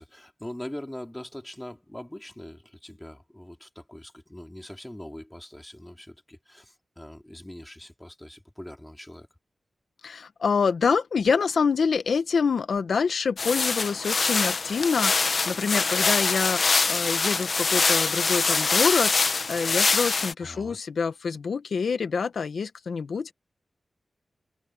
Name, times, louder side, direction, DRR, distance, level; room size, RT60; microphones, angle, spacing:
voice 1, 0.0-9.3 20.4-20.8, left 1 dB, 10° left, 2.6 m, -42 dB
voice 2, 10.0-23.3, left 5 dB, 75° left, 1.1 m, -26 dB
sound 1, 13.4-20.3, left 4 dB, 50° left, 1.0 m, -24 dB
wide cardioid pair, 145°, 0 cm